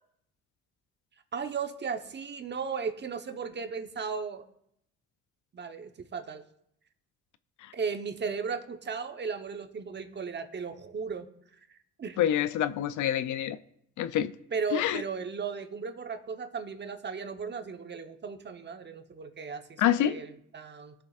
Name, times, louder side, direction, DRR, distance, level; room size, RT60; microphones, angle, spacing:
voice 1, 1.3-4.5 5.5-6.4 7.7-11.3 11.7-12.2 14.5-20.9, right 5 dB, 35° right, 1.0 m, -36 dB
voice 2, 12.2-13.6 14.0-14.3 14.7-15.0 19.8-20.2, left 11 dB, 75° left, 0.5 m, -27 dB
19.5 x 6.7 x 2.4 m
cardioid pair, 90°, 30 cm